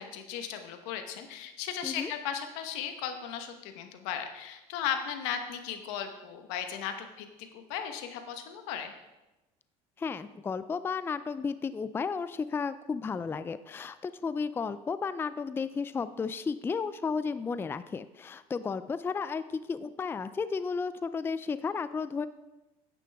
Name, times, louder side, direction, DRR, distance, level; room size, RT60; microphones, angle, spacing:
voice 1, 0.0-7.3 7.5-8.9, left 8 dB, 85° left, 7 dB, 1.2 m, -36 dB
voice 2, 10.0-22.3, left 5 dB, 15° left, 13 dB, 0.4 m, -33 dB
9.8 x 9.1 x 3.5 m, 1.0 s
supercardioid pair, 105°, 14 cm